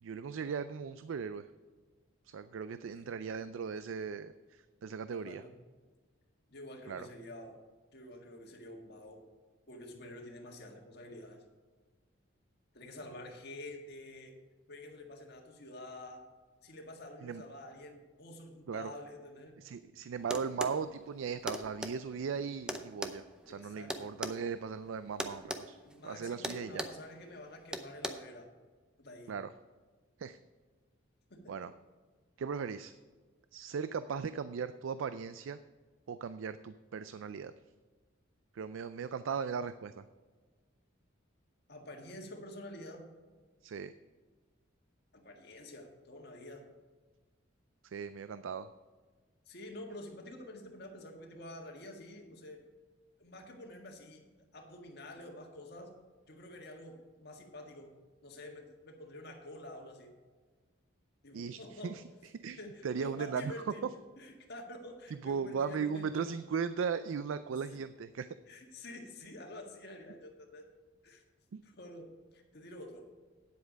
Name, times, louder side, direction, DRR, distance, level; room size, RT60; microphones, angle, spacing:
voice 1, 0.0-1.5 2.3-5.4 6.9-7.1 17.2-17.4 18.7-18.9 19.6-25.8 26.0-26.8 29.3-29.5 30.2-30.4 31.5-31.7 32.4-32.9 33.5-35.6 36.1-37.5 38.5-40.0 43.6-43.9 47.8-48.7 61.3-62.0 62.4-63.5 65.2-68.3 71.5-71.6, right 6 dB, 80° right, 13 dB, 0.4 m, -38 dB
voice 2, 5.1-5.5 6.5-7.6 7.9-9.2 9.7-11.4 12.7-14.4 14.7-16.2 16.6-19.6 23.4-24.1 25.8-28.5 29.0-29.4 31.3-31.7 41.7-43.1 45.1-46.7 49.5-52.7 53.2-54.2 54.5-55.9 56.3-57.9 58.2-60.1 61.2-62.0 62.5-63.8 64.2-66.4 68.5-70.7 71.0-71.2 71.6-73.1, left 1 dB, 55° left, 2 dB, 1.7 m, -48 dB
sound 1, 20.3-20.8 21.5-21.9 22.7-24.4 25.2-25.6 25.9-26.1 26.4-27.0 27.7-28.1, equal, 5° right, 0.6 m, -37 dB
9.6 x 8.1 x 5.1 m, 1.4 s
head